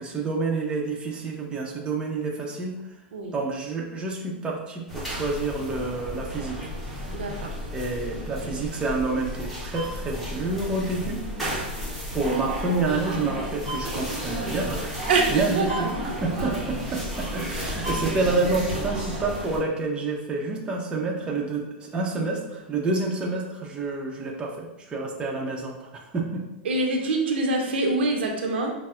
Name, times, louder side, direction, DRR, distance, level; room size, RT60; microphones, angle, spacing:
voice 1, 0.0-2.8 3.3-6.6 7.7-11.2 12.1-26.4, right 3 dB, 15° right, -1 dB, 0.6 m, -28 dB
sound 1, 4.9-19.6, equal, ahead, 1.0 m, -32 dB
voice 2, 7.1-7.6 15.1-15.8 26.6-28.7, right 3 dB, 75° right, 2 dB, 0.6 m, -25 dB
5.3 x 2.0 x 2.4 m, 0.96 s
hypercardioid pair, 115°, 6 cm